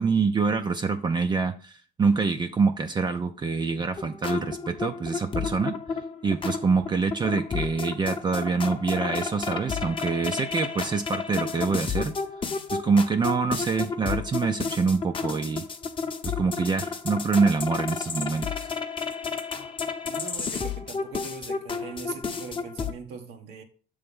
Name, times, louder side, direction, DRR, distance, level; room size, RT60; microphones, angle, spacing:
voice 1, 0.0-5.8 6.2-12.1 12.7-15.7 16.4-18.7, right 4 dB, 25° right, 0.5 m, -25 dB
sound 1, 4.0-22.9, left 5 dB, 30° left, 0.8 m, -32 dB
voice 2, 20.0-23.6, right 5 dB, 85° right, 1.1 m, -41 dB
6.8 x 3.4 x 5.3 m
cardioid pair, 110°, 17 cm